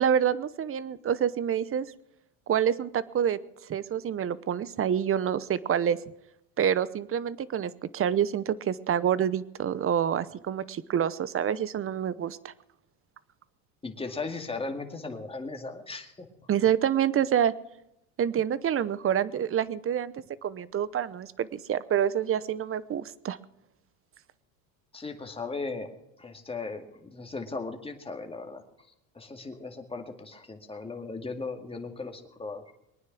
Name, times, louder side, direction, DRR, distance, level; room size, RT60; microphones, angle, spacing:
voice 1, 0.0-1.9 2.5-3.4 3.7-6.0 6.6-12.5 16.5-17.5 18.2-20.1 20.4-23.4, right 9 dB, 30° right, 18 dB, 0.8 m, -27 dB
voice 2, 13.8-16.3 24.9-25.9 26.2-28.6 29.1-32.7, left 3 dB, 15° left, 4 dB, 2.2 m, -37 dB
22.5 x 9.6 x 6.1 m, 0.85 s
supercardioid pair, 100°, 44 cm